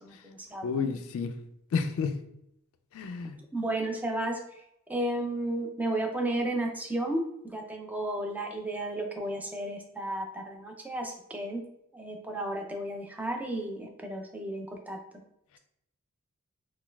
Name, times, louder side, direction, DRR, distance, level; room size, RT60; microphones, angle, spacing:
voice 1, 0.0-1.0 3.5-4.6 4.9-11.6 11.9-15.0, right 1 dB, 5° right, 2 dB, 0.4 m, -33 dB
voice 2, 0.6-1.3 1.7-2.2 2.9-3.4, left 5 dB, 65° left, 7 dB, 0.3 m, -30 dB
4.0 x 2.3 x 2.2 m, 0.78 s
head